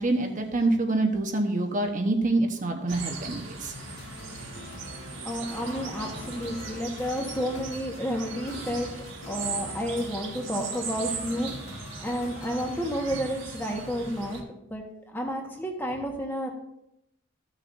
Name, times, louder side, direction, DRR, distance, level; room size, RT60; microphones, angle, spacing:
voice 1, 0.0-3.7, right 2 dB, 40° right, 3 dB, 1.1 m, -26 dB
sound 1, 2.9-14.4, right 4 dB, 60° right, 1.6 m, -39 dB
sound 2, 3.6-12.9, left 2 dB, 90° left, 1.6 m, -45 dB
voice 2, 5.2-8.9 9.3-14.4 14.7-16.5, equal, 10° left, 1 dB, 1.3 m, -31 dB
15.0 x 6.5 x 2.6 m, 0.85 s
head